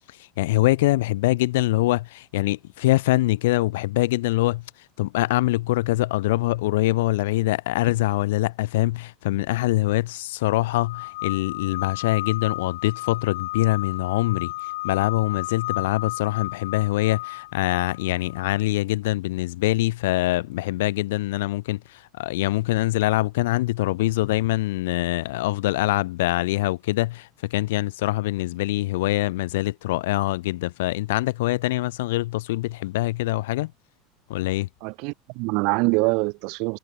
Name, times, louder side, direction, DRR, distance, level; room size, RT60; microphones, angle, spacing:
voice 1, 0.1-4.6 5.0-33.7 34.3-34.7, left 18 dB, 85° left, 3.9 m, -24 dB
sound 1, 10.8-18.6, left 21 dB, 70° left, 2.5 m, -34 dB
voice 2, 34.8-36.8, right 31 dB, 50° right, 1.4 m, -24 dB
supercardioid pair, 175°, 0 cm